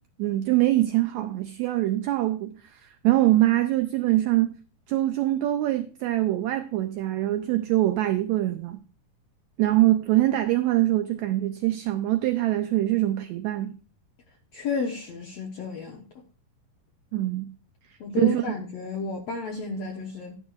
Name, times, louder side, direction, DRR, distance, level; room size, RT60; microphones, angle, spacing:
voice 1, 0.2-2.5 3.0-4.5 4.9-8.8 9.6-13.7 17.1-17.5 18.2-18.5, right 15 dB, 90° right, 1.6 m, -23 dB
voice 2, 14.5-16.0 18.0-20.3, left 4 dB, 65° left, 1.7 m, -32 dB
11.5 x 10.5 x 2.4 m
omnidirectional pair, 3.8 m